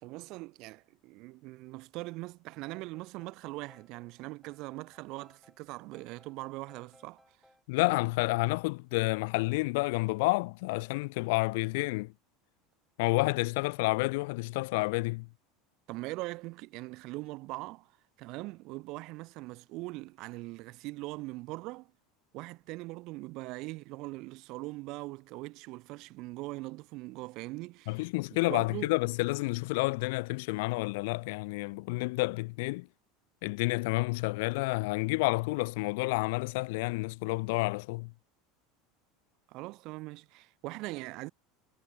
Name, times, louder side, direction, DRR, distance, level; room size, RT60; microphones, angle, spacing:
voice 1, 0.0-7.4 15.9-17.9 18.2-21.9 22.3-28.0 28.5-28.9 39.5-41.3, right 22 dB, 55° right, 3.0 m, -41 dB
sound 1, 2.5-7.6, left 1 dB, 5° left, 4.8 m, -64 dB
voice 2, 7.7-12.1 13.0-15.3 27.9-32.9 33.4-38.1, left 25 dB, 70° left, 0.4 m, -30 dB
supercardioid pair, 145°, 0 cm